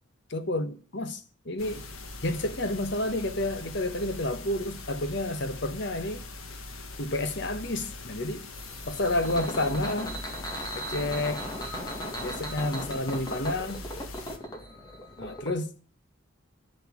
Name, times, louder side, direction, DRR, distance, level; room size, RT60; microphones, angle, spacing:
voice 1, 0.3-1.9 2.2-6.2 7.0-8.5 8.9-10.2 10.7-11.5 12.2-13.8 15.2-15.7, left 1 dB, 55° left, 1.2 m, -30 dB
sound 1, 1.6-14.4, left 2 dB, 85° left, 1.7 m, -42 dB
sound 2, 8.5-15.5, equal, 20° left, 1.9 m, -38 dB
12.0 x 6.9 x 8.5 m
head